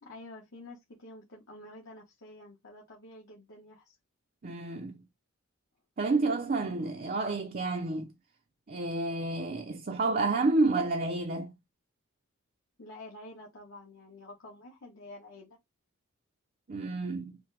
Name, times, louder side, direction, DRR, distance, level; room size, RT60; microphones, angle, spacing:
voice 1, 0.0-4.0 12.8-15.6, left 2 dB, 65° left, 1.4 m, -49 dB
voice 2, 4.4-5.0 6.0-8.1 8.7-11.6 16.7-17.4, right 3 dB, 40° right, 0.5 m, -30 dB
5.8 x 2.2 x 3.3 m
head